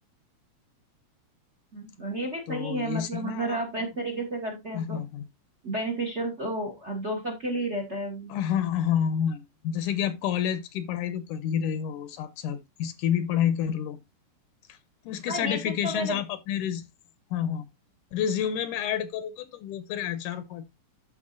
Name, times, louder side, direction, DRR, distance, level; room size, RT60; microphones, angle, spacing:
voice 1, 1.7-5.0 5.6-8.3 15.3-16.2, right 1 dB, 40° right, 1.0 m, -32 dB
voice 2, 2.5-3.6 4.7-5.2 8.3-14.0 14.7-14.8 15.1-16.8 17.3-17.6 18.1-20.8, left 9 dB, 80° left, 2.1 m, -29 dB
13.5 x 4.5 x 2.5 m
omnidirectional pair, 3.7 m